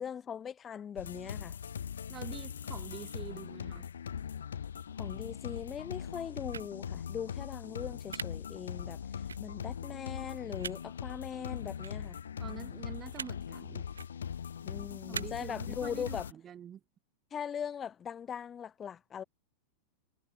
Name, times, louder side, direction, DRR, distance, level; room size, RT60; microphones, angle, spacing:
voice 1, 0.0-1.6 5.0-12.2 14.6-16.3 17.3-19.2, left 8 dB, 25° left, 2.3 m, -40 dB
sound 1, 1.0-16.3, left 8 dB, 65° left, 0.9 m, -41 dB
voice 2, 2.1-3.9 12.4-13.9 15.1-16.8, right 9 dB, 25° right, 2.6 m, -46 dB
sound 2, 6.5-6.7 8.1-8.2 9.3-9.4 10.6-10.7 11.8-11.9 13.1-13.3 13.9-14.1 15.1-15.2, right 6 dB, 70° right, 0.6 m, -39 dB
figure-of-eight pair, 90°, 0 cm